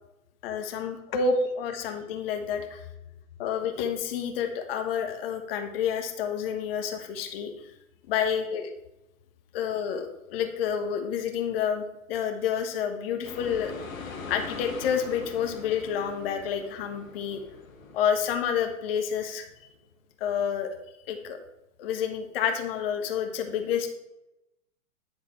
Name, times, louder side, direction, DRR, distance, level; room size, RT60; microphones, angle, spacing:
voice 1, 0.4-2.8 3.4-7.7 8.1-8.7 9.5-11.8 12.1-13.7 14.3-17.4 17.9-19.5 20.2-20.8 21.1-21.4 21.8-23.9, left 7 dB, 45° left, 5 dB, 1.2 m, -29 dB
sound 1, 13.2-19.5, left 4 dB, 75° left, 1.7 m, -42 dB
9.8 x 4.0 x 4.2 m, 0.91 s
hypercardioid pair, 125°, 41 cm